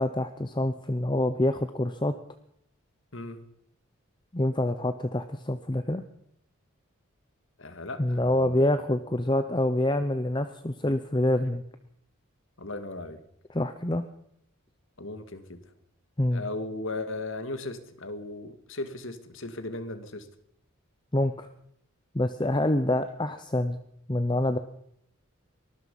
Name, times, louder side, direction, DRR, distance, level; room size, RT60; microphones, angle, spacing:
voice 1, 0.0-2.1 4.3-6.0 8.0-11.6 13.5-14.0 16.2-16.4 21.1-21.5 22.1-23.8 24.1-24.6, left 1 dB, 20° left, 10 dB, 0.8 m, -26 dB
voice 2, 3.1-3.4 7.6-8.6 12.6-13.2 15.0-15.6 16.3-20.3, left 2 dB, 65° left, 10 dB, 2.1 m, -37 dB
24.0 x 19.5 x 5.5 m, 0.70 s
head